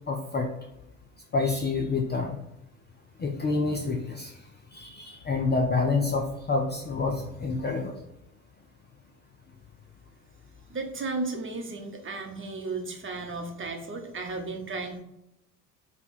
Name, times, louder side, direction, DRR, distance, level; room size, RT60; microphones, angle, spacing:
voice 1, 0.1-0.5 1.3-2.4 3.2-4.3 4.7-7.9, left 3 dB, 20° left, 2 dB, 0.5 m, -27 dB
voice 2, 10.7-15.0, right 3 dB, 25° right, 3 dB, 1.0 m, -34 dB
5.5 x 2.3 x 4.2 m, 0.87 s
hypercardioid pair, 65°, 50 cm